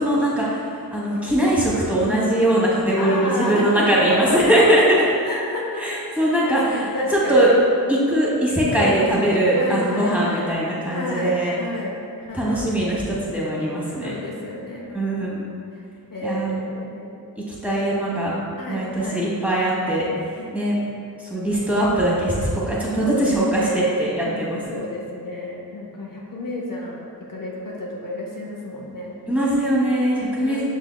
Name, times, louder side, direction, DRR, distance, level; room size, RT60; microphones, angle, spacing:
voice 1, 0.0-5.0 5.8-7.5 7.9-11.5 12.3-14.1 14.9-15.4 16.2-16.6 17.6-18.3 18.7-20.1 20.5-20.8 21.2-24.8 29.3-30.6, right 1 dB, 5° right, -7 dB, 1.2 m, -21 dB
voice 2, 3.0-4.6 5.2-7.5 8.7-9.1 9.5-10.5 10.9-12.6 14.0-15.0 15.7-15.8 16.1-17.2 18.6-19.3 20.4-20.5 23.0-23.8 24.2-29.2 30.4-30.6, left 1 dB, 55° left, -3 dB, 0.7 m, -30 dB
6.3 x 3.6 x 2.2 m, 2.4 s
wide cardioid pair, 60°, 39 cm